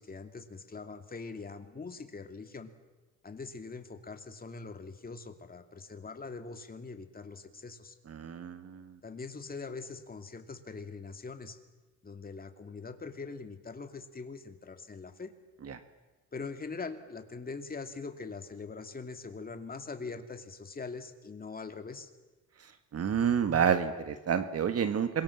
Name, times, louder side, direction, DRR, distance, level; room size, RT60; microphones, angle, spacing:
voice 1, 0.0-2.7 3.2-8.0 9.0-11.6 12.0-15.3 16.3-22.1, left 4 dB, 30° left, 7 dB, 2.6 m, -42 dB
voice 2, 8.1-8.9 15.6-15.8 22.9-25.2, right 7 dB, 55° right, 9 dB, 1.7 m, -29 dB
26.5 x 23.0 x 7.3 m, 1.2 s
cardioid pair, 90°, 30 cm